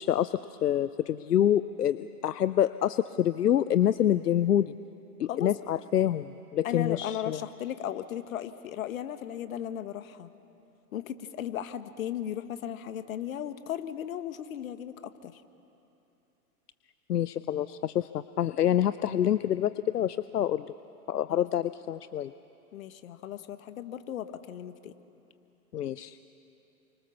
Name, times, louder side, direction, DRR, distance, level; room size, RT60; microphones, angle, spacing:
voice 1, 0.0-4.7 5.2-7.4 17.1-20.7 21.1-22.3 25.7-26.2, left 11 dB, 80° left, 14 dB, 0.7 m, -27 dB
voice 2, 6.6-10.3 10.9-15.4 21.3-21.7 22.7-24.9, left 10 dB, 60° left, 11 dB, 1.5 m, -36 dB
29.5 x 25.0 x 6.9 m, 2.9 s
hypercardioid pair, 115°, 47 cm